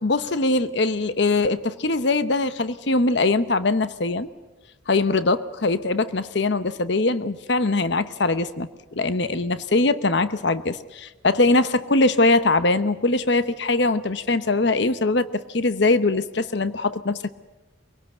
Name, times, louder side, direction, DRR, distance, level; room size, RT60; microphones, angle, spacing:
voice 1, 0.0-4.3 4.9-17.3, left 3 dB, 60° left, 13 dB, 0.9 m, -22 dB
24.0 x 18.0 x 7.9 m, 1.1 s
head